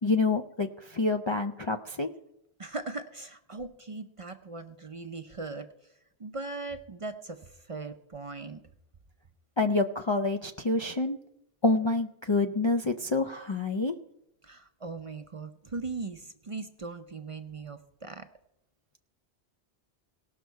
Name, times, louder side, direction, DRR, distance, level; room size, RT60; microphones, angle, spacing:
voice 1, 0.0-2.1 9.6-11.2 11.6-13.9, left 3 dB, 40° left, 5 dB, 0.4 m, -27 dB
voice 2, 2.6-5.7 6.2-8.6 14.4-18.3, right 3 dB, 40° right, 8 dB, 0.6 m, -39 dB
18.0 x 6.4 x 4.6 m, 0.85 s
omnidirectional pair, 1.1 m